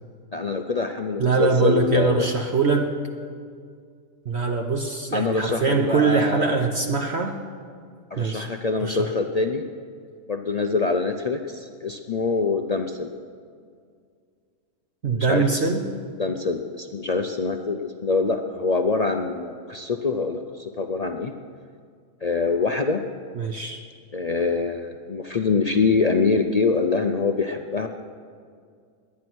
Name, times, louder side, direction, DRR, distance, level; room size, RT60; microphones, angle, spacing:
voice 1, 0.3-2.3 5.1-6.5 8.1-9.6 10.3-13.1 15.1-21.3 22.2-23.0 24.1-27.9, left 4 dB, 65° left, 5 dB, 0.3 m, -24 dB
voice 2, 1.2-2.9 4.3-7.4 8.2-8.5 8.8-9.1 15.0-15.9 23.3-23.8, right 4 dB, 50° right, 3 dB, 1.1 m, -23 dB
21.0 x 9.5 x 6.2 m, 2.1 s
omnidirectional pair, 1.6 m